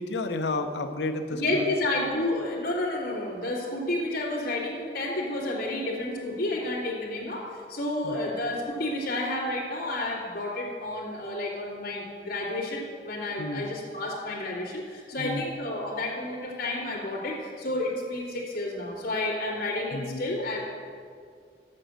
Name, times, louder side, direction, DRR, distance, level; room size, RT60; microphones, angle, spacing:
voice 1, 0.0-1.7 8.0-8.1 13.4-13.7 15.2-15.5 19.9-20.2, left 2 dB, 85° left, 7 dB, 0.7 m, -31 dB
voice 2, 1.3-20.6, left 1 dB, 60° left, -9 dB, 2.4 m, -30 dB
7.6 x 6.3 x 7.6 m, 2.2 s
head